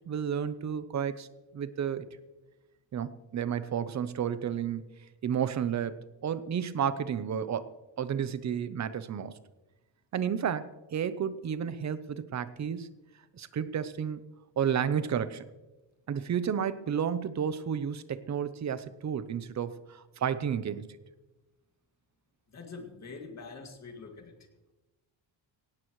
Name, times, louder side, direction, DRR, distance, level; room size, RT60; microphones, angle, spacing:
voice 1, 0.1-1.3 1.5-2.1 2.9-4.8 5.2-7.7 8.0-9.4 10.1-12.9 13.3-14.2 14.6-15.4 16.1-21.0, right 8 dB, 35° right, 14 dB, 0.7 m, -32 dB
voice 2, 22.5-24.3, left 4 dB, 35° left, 3 dB, 2.1 m, -44 dB
17.5 x 17.0 x 3.1 m, 1.1 s
cardioid pair, 175°, 47 cm